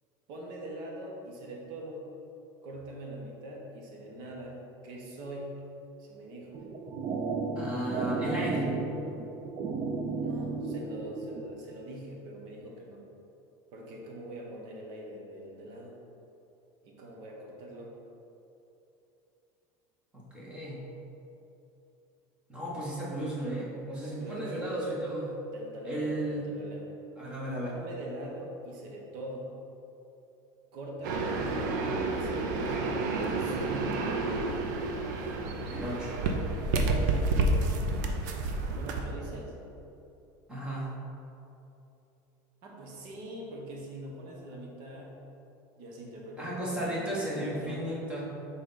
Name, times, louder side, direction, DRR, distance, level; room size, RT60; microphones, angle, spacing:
voice 1, 0.3-2.1 2.6-5.6 6.0-6.7 10.2-13.0 13.7-16.0 16.8-17.9 23.8-24.9 25.5-26.9 27.6-29.5 30.7-31.9 32.1-33.0 33.3-34.0 38.6-39.6 42.6-45.2 45.8-47.9, right 1 dB, 50° right, -1 dB, 1.1 m, -43 dB
sound 1, 6.5-11.5, right 3 dB, 30° right, 0.4 m, -33 dB
voice 2, 7.6-8.7 20.1-20.8 22.5-25.3 25.8-26.5 27.2-27.7 35.7-36.1 40.5-40.9 46.4-48.2, right 1 dB, 10° right, -6 dB, 1.1 m, -34 dB
sound 2, 31.0-39.0, right 2 dB, 85° right, 0.6 m, -30 dB
6.3 x 3.9 x 3.9 m, 2.9 s
cardioid pair, 175°, 10 cm